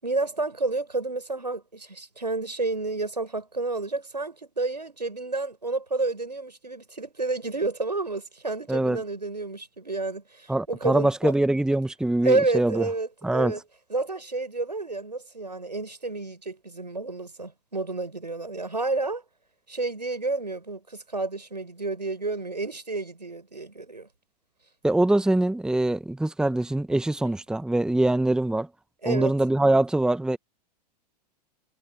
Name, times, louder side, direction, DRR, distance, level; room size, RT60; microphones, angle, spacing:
voice 1, 0.0-11.3 12.2-13.6 13.9-19.2 19.7-24.1 29.0-29.3, right 3 dB, 85° right, 5.6 m, -30 dB
voice 2, 8.7-9.0 10.5-12.8 13.2-13.5 24.8-28.7 29.1-30.4, right 2 dB, 5° right, 1.4 m, -23 dB
figure-of-eight pair, 95°, 21 cm